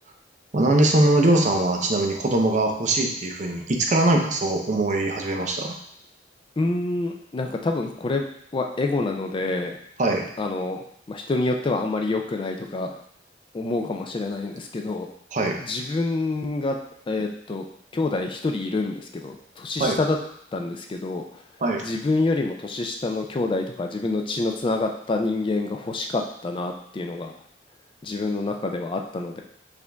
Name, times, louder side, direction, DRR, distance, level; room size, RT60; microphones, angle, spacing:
voice 1, 0.5-5.7 10.0-10.3 15.3-15.6 19.8-20.0 21.6-21.9, right 2 dB, 40° right, 2 dB, 0.6 m, -21 dB
voice 2, 6.6-8.2 8.5-9.8 10.4-12.9 13.5-15.1 15.6-16.8 17.1-17.6 17.9-20.2 20.5-21.4 21.8-27.3 28.0-29.4, left 2 dB, 30° left, 3 dB, 0.3 m, -27 dB
5.0 x 2.5 x 3.4 m, 0.68 s
head